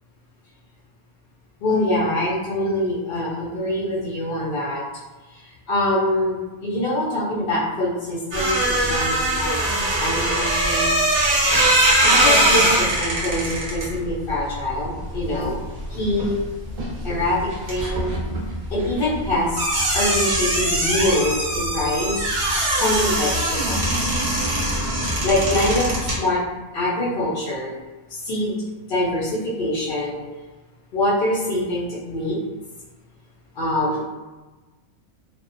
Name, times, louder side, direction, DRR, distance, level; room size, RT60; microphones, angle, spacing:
voice 1, 1.6-4.8 5.3-10.9 12.0-15.6 15.9-16.4 17.0-18.2 18.7-22.2 22.7-24.1 25.2-26.4 26.7-27.7 28.1-30.2 30.9-32.4 33.6-34.0, left 1 dB, 60° left, -7 dB, 0.6 m, -24 dB
sound 1, 8.3-16.4 16.7-26.2, right 1 dB, 55° right, 0.7 m, -22 dB
2.6 x 2.1 x 2.4 m, 1.2 s
omnidirectional pair, 1.5 m